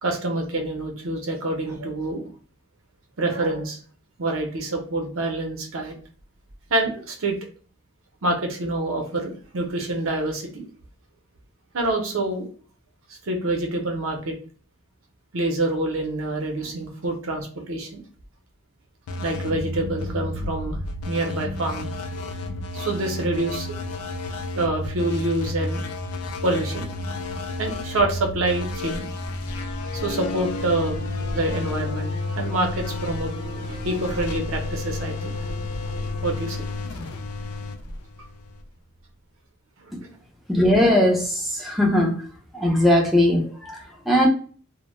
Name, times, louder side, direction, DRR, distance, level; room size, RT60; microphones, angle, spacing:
voice 1, 0.0-2.3 3.2-3.8 4.2-5.9 6.7-7.4 8.2-10.6 11.7-12.5 13.2-14.4 15.3-18.0 19.2-20.8 21.0-21.9 22.7-23.7 24.5-25.8 26.4-26.9 27.6-29.1 29.9-31.1 31.3-35.4 36.2-36.6 40.0-40.1, right 2 dB, 65° right, 0.6 m, -26 dB
sound 1, 19.1-38.6, left 2 dB, 85° left, 0.4 m, -31 dB
sound 2, 28.9-38.7, equal, 55° left, 0.8 m, -37 dB
voice 2, 40.5-42.2 42.5-44.3, left 1 dB, ahead, 0.4 m, -20 dB
2.1 x 2.1 x 3.0 m
head